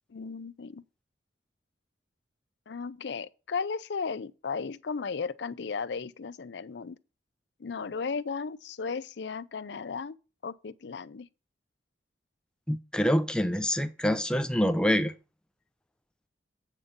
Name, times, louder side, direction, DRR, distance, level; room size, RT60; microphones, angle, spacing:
voice 1, 0.1-0.8 2.7-7.0 7.6-10.2 10.4-11.3, left 5 dB, 70° left, 0.5 m, -35 dB
voice 2, 12.7-15.1, equal, 5° left, 0.5 m, -26 dB
8.3 x 5.2 x 5.5 m
head